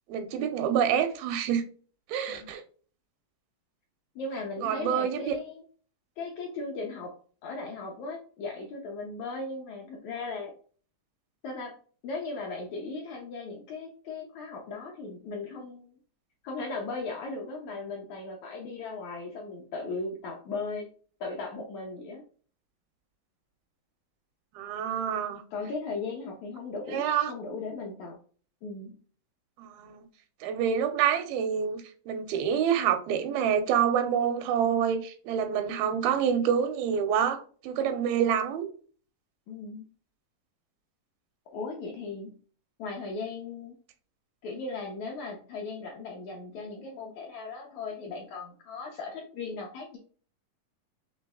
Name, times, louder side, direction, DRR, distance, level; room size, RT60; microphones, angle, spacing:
voice 1, 0.1-1.6 2.1-2.6 4.6-5.3 24.6-25.4 26.9-27.3 29.6-30.1 30.4-38.7, right 8 dB, 85° right, 2.6 m, -27 dB
voice 2, 4.2-5.6 6.2-7.2 7.4-10.5 11.4-11.8 12.0-16.0 16.4-20.9 21.2-22.2 25.5-28.2 28.6-29.0 39.5-39.9 41.5-42.4 42.8-43.8 44.4-50.0, left 3 dB, 70° left, 1.8 m, -37 dB
6.1 x 3.2 x 2.3 m
omnidirectional pair, 4.2 m